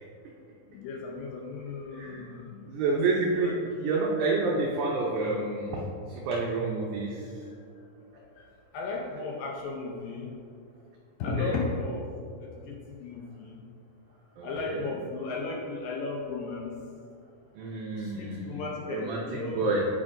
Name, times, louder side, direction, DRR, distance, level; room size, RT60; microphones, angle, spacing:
voice 1, 0.7-2.6 2.9-3.0 3.3-3.6 8.1-8.5 8.7-10.3 11.2-12.1 12.4-13.6 14.4-16.7 18.0-19.7, left 3 dB, 75° left, -1 dB, 2.3 m, -35 dB
voice 2, 1.9-2.3 2.7-7.3 11.4-11.5 14.4-14.8 17.6-19.8, right 3 dB, 75° right, -2 dB, 1.9 m, -29 dB
8.8 x 8.5 x 2.6 m, 2.3 s
omnidirectional pair, 4.3 m